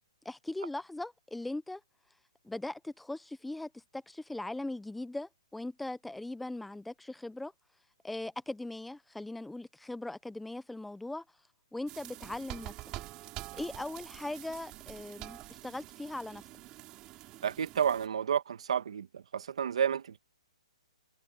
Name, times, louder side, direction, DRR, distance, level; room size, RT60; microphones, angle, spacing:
voice 1, 0.2-1.8 2.4-7.5 8.0-11.2 11.7-12.8 13.5-16.4, left 2 dB, ahead, 0.5 m, -39 dB
sound 1, 11.9-18.1, right 17 dB, 15° right, 4.3 m, -46 dB
voice 2, 17.4-20.2, right 8 dB, 60° right, 1.4 m, -31 dB
hypercardioid pair, 175°, 4 cm